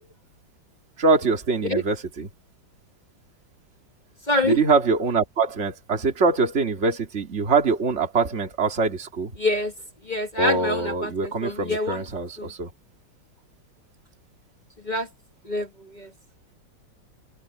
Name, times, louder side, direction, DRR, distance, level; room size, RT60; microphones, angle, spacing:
voice 1, 1.0-2.3 4.4-9.3 10.4-12.7, right 4 dB, 35° right, 2.6 m, -23 dB
voice 2, 4.3-4.6 9.4-9.7 10.0-12.0 12.4-12.5 14.8-15.1 15.4-16.1, left 1 dB, 25° left, 1.3 m, -26 dB
open air
omnidirectional pair, 2.1 m